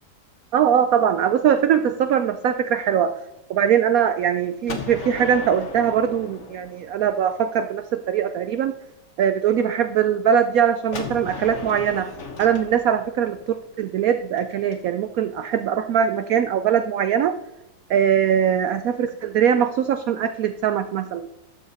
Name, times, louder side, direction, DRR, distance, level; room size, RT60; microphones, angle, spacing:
voice 1, 0.5-3.1 3.5-8.7 9.2-12.1 12.4-17.3 17.9-21.3, right 8 dB, 85° right, 10 dB, 0.7 m, -21 dB
Gunshot gunfire, 4.7-7.5 10.9-14.7, left 4 dB, 40° left, 1.3 m, -36 dB
12.5 x 7.1 x 4.1 m, 0.85 s
omnidirectional pair, 2.1 m